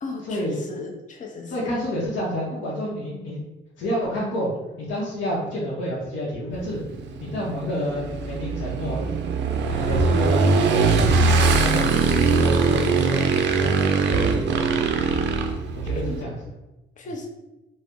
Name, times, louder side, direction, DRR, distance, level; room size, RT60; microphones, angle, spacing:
voice 1, 0.0-1.7 16.0-16.2 17.0-17.3, left 3 dB, 40° left, 0 dB, 0.6 m, -36 dB
voice 2, 1.5-3.4 3.8-4.5 4.8-6.8 7.2-9.1 9.7-11.0 11.2-13.8 14.1-14.9 15.1-15.2 15.7-16.3, equal, 75° left, -5 dB, 0.7 m, -29 dB
Motorcycle / Engine, 6.5-16.2, right 4 dB, 65° right, 0.4 m, -21 dB
2.6 x 2.0 x 3.5 m, 1.0 s
cardioid pair, 90°, 20 cm